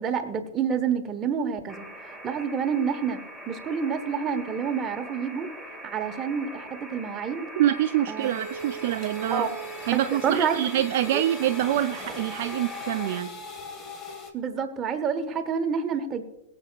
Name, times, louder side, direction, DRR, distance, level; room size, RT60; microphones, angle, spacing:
voice 1, 0.0-3.2 3.5-5.5 5.8-7.5 8.1-8.3 9.3-9.5 9.9-10.6 11.1-11.2 14.3-16.2, right 6 dB, 25° right, 6 dB, 1.3 m, -28 dB
sound 1, 1.7-13.2, right 1 dB, 10° left, 2.1 m, -42 dB
voice 2, 7.6-9.5 9.9-13.3, right 12 dB, 55° right, 10 dB, 0.4 m, -25 dB
sound 2, 8.2-14.3, equal, 25° left, 1.8 m, -39 dB
22.0 x 7.9 x 2.5 m, 0.89 s
figure-of-eight pair, 90°, 0 cm